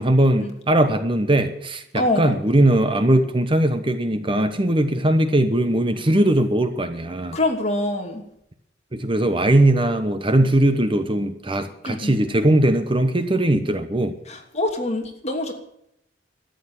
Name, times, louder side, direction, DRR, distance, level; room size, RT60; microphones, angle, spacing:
voice 1, 0.0-7.4 8.9-14.1, right 1 dB, 30° right, 1.0 m, -20 dB
voice 2, 1.9-2.4 7.3-8.2 11.8-12.1 14.3-15.5, left 2 dB, 40° left, 2.7 m, -25 dB
13.5 x 9.3 x 9.9 m
head